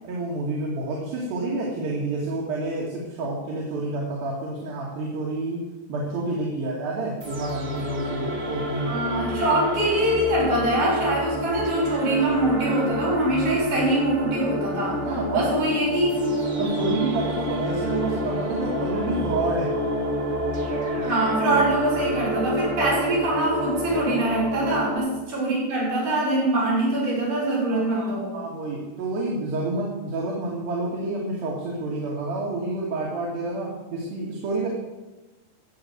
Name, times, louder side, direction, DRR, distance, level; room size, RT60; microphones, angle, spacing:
voice 1, 0.0-5.6 5.9-9.0 15.0-15.5 16.6-19.8 27.7-34.7, right 2 dB, 80° right, -4 dB, 3.9 m, -29 dB
sound 1, 7.2-25.0, equal, 40° right, 1.1 m, -28 dB
voice 2, 8.8-15.1 15.3-16.2 21.0-28.4, right 1 dB, 60° right, -6 dB, 6.8 m, -23 dB
13.5 x 7.9 x 7.9 m, 1.1 s
omnidirectional pair, 4.1 m